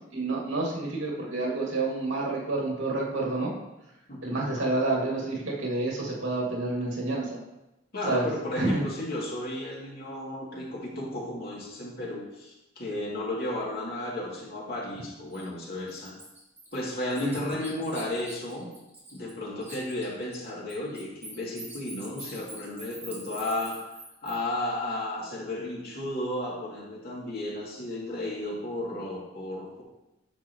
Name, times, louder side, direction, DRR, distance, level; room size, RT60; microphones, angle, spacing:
voice 1, 0.1-3.5 4.2-7.4 8.1-8.3 8.6-8.8 17.2-17.5, right 2 dB, 80° right, -3 dB, 2.4 m, -29 dB
voice 2, 4.1-4.5 7.9-16.1 16.7-18.7 19.1-23.8 24.2-29.8, left 1 dB, 55° left, -5 dB, 2.7 m, -33 dB
Bird, 15.3-15.4 15.9-19.3 19.6-24.4, right 2 dB, 10° right, 2.3 m, -44 dB
10.0 x 7.0 x 3.1 m, 0.94 s
head